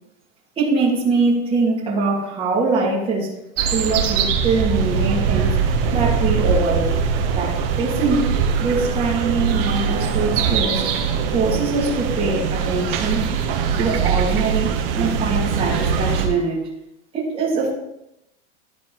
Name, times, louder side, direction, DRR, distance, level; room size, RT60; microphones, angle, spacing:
voice 1, 0.6-3.3 3.7-5.5 5.9-6.9 7.3-10.8 11.3-13.3 13.8-16.7 17.1-17.7, right 3 dB, 15° right, -7 dB, 1.8 m, -22 dB
sound 1, 3.6-16.3, right 6 dB, 55° right, 1.4 m, -22 dB
12.0 x 4.2 x 4.5 m, 0.85 s
supercardioid pair, 155°, 34 cm